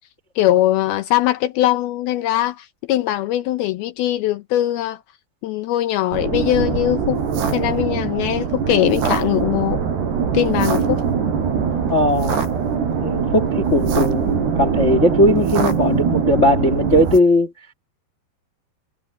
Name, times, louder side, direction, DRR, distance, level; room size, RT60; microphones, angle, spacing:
voice 1, 0.4-5.0 5.4-7.2 7.5-9.8 10.3-11.1, left 13 dB, 75° left, 2.6 m, -21 dB
sound 1, 6.1-17.2, right 6 dB, 85° right, 6.5 m, -22 dB
voice 2, 11.9-12.4 13.0-17.5, left 1 dB, 40° left, 1.0 m, -18 dB
omnidirectional pair, 4.7 m